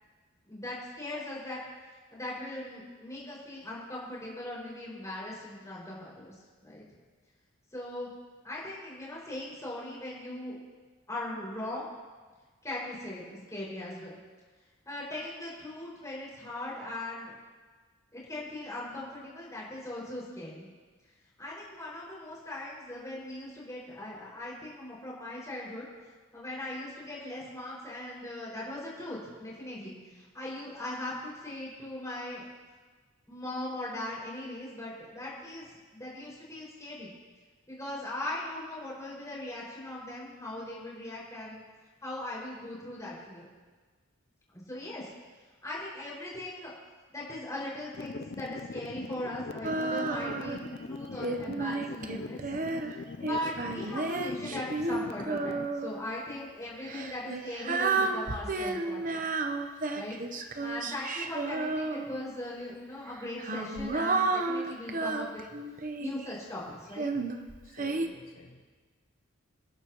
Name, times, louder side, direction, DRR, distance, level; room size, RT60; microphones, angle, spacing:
voice 1, 0.5-1.6 2.1-6.3 6.6-6.8 7.7-8.1 8.4-10.6 11.1-11.9 12.6-14.2 14.8-17.3 18.1-20.7 21.4-25.9 26.3-32.5 33.3-35.7 35.9-37.1 37.7-41.6 42.0-43.5 44.5-45.1 45.6-46.7 47.1-50.6 50.8-52.4 52.9-59.2 59.9-60.2 60.6-65.4 66.0-67.1, left 1 dB, 15° left, -6 dB, 5.7 m, -39 dB
sound 1, 47.9-55.7, left 3 dB, 50° left, 0.5 m, -41 dB
Female singing, 49.6-50.7 51.2-56.0 56.8-62.4 63.1-66.3 66.9-68.1, right 3 dB, 40° right, 0.9 m, -32 dB
voice 2, 67.6-68.6, left 1 dB, 80° left, 1 dB, 1.4 m, -52 dB
28.5 x 11.0 x 3.1 m, 1.4 s
head